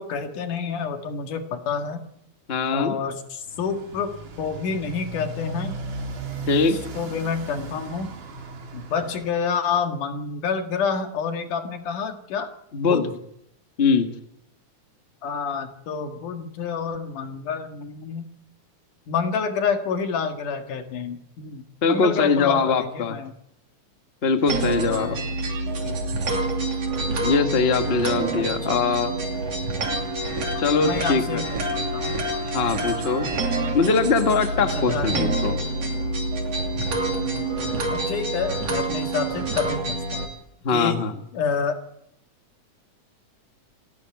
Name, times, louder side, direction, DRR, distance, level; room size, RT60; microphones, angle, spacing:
voice 1, 0.0-2.0 2.7-5.7 6.7-8.1 8.7-12.5 12.9-13.1 15.2-18.3 19.1-23.4 24.9-25.2 25.8-26.0 28.3-28.8 30.7-32.2 33.0-33.3 34.6-35.4 37.1-40.2 40.7-41.1 41.3-41.8, left 6 dB, 85° left, 5 dB, 3.5 m, -29 dB
voice 2, 2.5-3.0 6.5-6.8 12.7-13.0 13.8-14.1 21.8-23.2 24.2-25.2 27.2-29.1 30.6-31.4 32.4-33.3 33.7-35.6 40.6-41.1, left 4 dB, 30° left, 6 dB, 1.2 m, -22 dB
Motorcycle, 3.4-9.4, right 2 dB, 90° right, 4.6 m, -36 dB
sound 1, 24.5-40.3, right 2 dB, 55° right, 3.8 m, -27 dB
28.0 x 11.5 x 9.4 m, 0.78 s
omnidirectional pair, 3.5 m